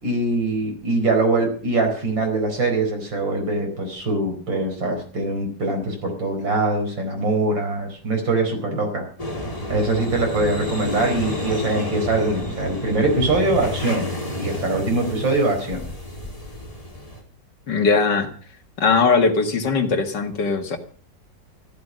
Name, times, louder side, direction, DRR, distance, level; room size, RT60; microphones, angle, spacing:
voice 1, 0.0-9.0 9.7-14.1 14.4-15.8, right 2 dB, 85° right, 3 dB, 5.3 m, -23 dB
sound 1, 9.2-17.2, left 1 dB, 20° left, 3.5 m, -30 dB
voice 2, 17.7-18.3 18.8-20.8, left 4 dB, 70° left, 7 dB, 2.4 m, -19 dB
14.5 x 12.5 x 6.3 m, 0.43 s
omnidirectional pair, 2.0 m